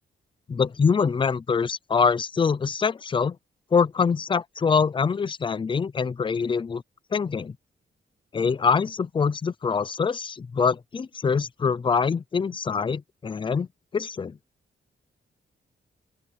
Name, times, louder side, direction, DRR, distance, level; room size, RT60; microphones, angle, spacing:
voice 1, 0.5-3.4 3.7-6.8 7.1-7.6 8.3-13.7 13.9-14.4, left 5 dB, 25° left, 0.5 m, -24 dB
open air
wide cardioid pair, 170°, 19 cm